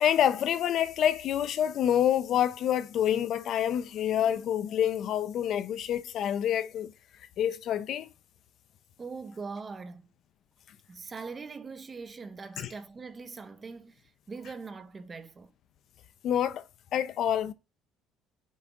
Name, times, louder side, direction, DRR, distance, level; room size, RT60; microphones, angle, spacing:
voice 1, 0.0-6.9 7.4-8.1 12.6-12.7 16.2-16.6 16.9-17.5, left 10 dB, 55° left, 0.6 m, -27 dB
voice 2, 9.0-10.1 10.9-13.9 14.3-15.5, right 4 dB, 25° right, 0.7 m, -41 dB
6.2 x 3.9 x 4.5 m
cardioid pair, 130°, 0 cm